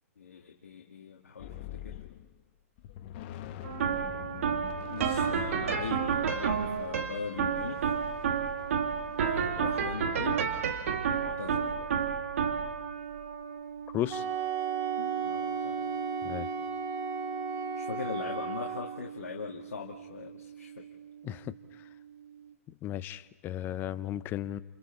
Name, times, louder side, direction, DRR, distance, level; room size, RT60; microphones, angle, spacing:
voice 1, 0.2-2.0 4.9-8.0 9.2-10.5 11.1-11.9 15.0-15.9 16.4-16.5 17.7-20.8, left 6 dB, 75° left, 0 dB, 1.8 m, -41 dB
sound 1, 1.4-2.4 2.8-9.8, left 11 dB, 40° left, 1.2 m, -46 dB
sound 2, 3.6-20.8, right 7 dB, 60° right, 2.2 m, -32 dB
voice 2, 13.9-14.2 16.2-16.5 21.2-21.5 22.8-24.6, left 12 dB, 25° left, 15 dB, 0.7 m, -34 dB
Wind instrument woodwind instrument, 14.1-19.0, right 5 dB, 25° right, 1.9 m, -35 dB
29.0 x 28.5 x 4.4 m, 1.2 s
hypercardioid pair, 125°, 8 cm